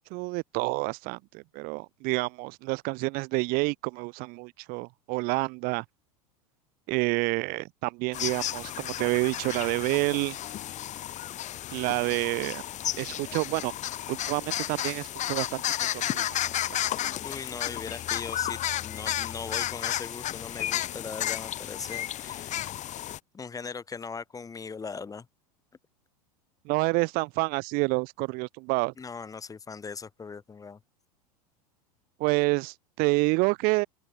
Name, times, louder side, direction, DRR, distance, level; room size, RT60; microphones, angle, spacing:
voice 1, 0.1-5.8 6.9-10.4 11.7-12.6 13.0-13.7 14.1-15.6 15.9-16.8 26.6-28.9 32.2-33.9, right 26 dB, 50° right, 1.4 m, -28 dB
sound 1, 8.1-23.2, left 12 dB, 40° left, 5.3 m, -33 dB
voice 2, 17.2-22.7 23.3-25.3 29.0-30.8, left 5 dB, 20° left, 2.2 m, -39 dB
open air
hypercardioid pair, 90°, 20 cm